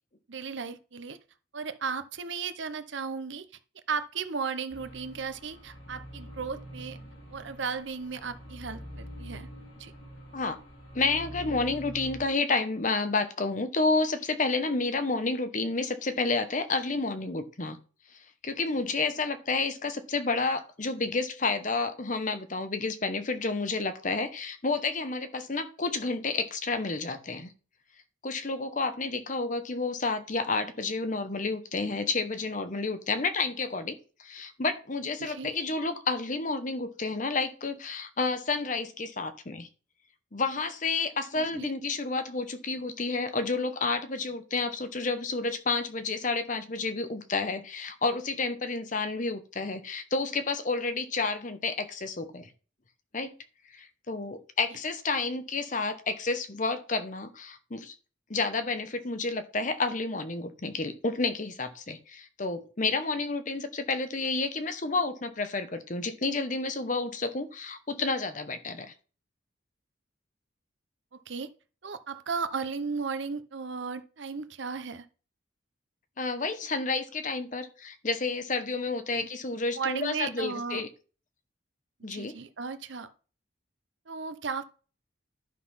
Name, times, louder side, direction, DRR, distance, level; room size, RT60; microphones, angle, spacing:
voice 1, 0.3-1.2 1.5-3.5 3.9-7.0 7.3-9.5 9.8-9.9 35.2-35.6 41.3-41.7 71.1-71.5 71.8-75.1 78.8-79.3 79.7-80.8 82.1-83.1 84.1-84.6, right 5 dB, 65° right, 0.7 m, -35 dB
sound 1, 4.7-12.3, equal, 80° left, 3.9 m, -45 dB
voice 2, 10.9-17.8 18.4-27.5 28.2-39.7 40.3-52.5 53.1-53.3 53.7-57.9 58.3-68.9 76.2-80.9 82.0-82.4, left 3 dB, 40° left, 0.9 m, -30 dB
11.5 x 4.0 x 5.6 m
head